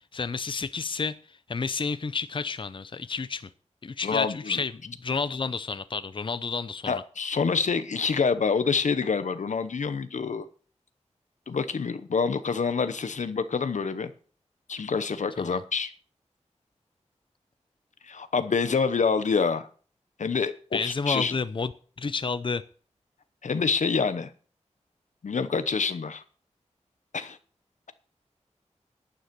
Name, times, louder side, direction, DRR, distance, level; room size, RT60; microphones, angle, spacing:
voice 1, 0.0-3.5 3.8-7.0 15.4-15.6 20.7-21.7 22.0-22.6, left 4 dB, 45° left, 14 dB, 0.6 m, -30 dB
voice 2, 4.0-4.6 6.9-10.5 11.5-14.1 14.7-15.9 18.0-19.7 20.2-21.3 23.4-24.3 25.2-26.2 27.1-27.4, left 5 dB, 90° left, 11 dB, 0.9 m, -27 dB
11.5 x 9.4 x 5.3 m, 0.42 s
wide cardioid pair, 95°, 12 cm